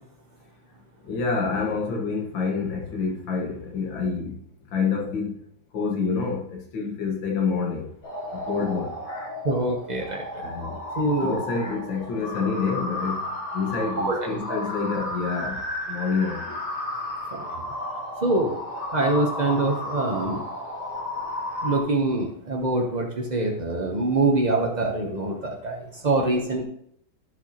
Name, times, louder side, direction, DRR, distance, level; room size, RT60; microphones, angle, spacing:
voice 1, 1.1-4.3 4.7-5.3 5.7-7.9 8.5-9.3 10.4-10.7 11.2-13.2 13.5-15.6 15.9-16.6, left 5 dB, 70° left, -1 dB, 2.1 m, -27 dB
sound 1, 8.0-21.8, left 1 dB, 55° left, 3.4 m, -33 dB
voice 2, 9.4-10.4 11.0-11.4 14.0-14.6 17.3-17.5 18.2-18.6 18.9-20.4 21.6-25.8 26.0-26.6, right 2 dB, 60° right, 0 dB, 0.4 m, -24 dB
13.5 x 6.3 x 2.9 m, 0.71 s
omnidirectional pair, 2.2 m